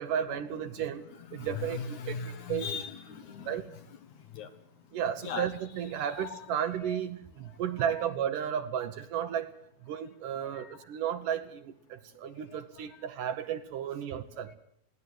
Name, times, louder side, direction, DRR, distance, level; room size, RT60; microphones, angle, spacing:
voice 1, 0.0-1.0 1.3-2.7 3.5-3.6 4.9-9.5 9.8-14.5, right 9 dB, 70° right, 10 dB, 2.3 m, -33 dB
voice 2, 0.7-3.9 4.3-4.6 5.2-5.5 6.0-7.0 7.4-8.1 10.4-10.9 12.2-13.1 14.3-14.5, left 6 dB, 60° left, 8 dB, 2.4 m, -41 dB
21.0 x 17.0 x 7.9 m, 0.68 s
omnidirectional pair, 4.4 m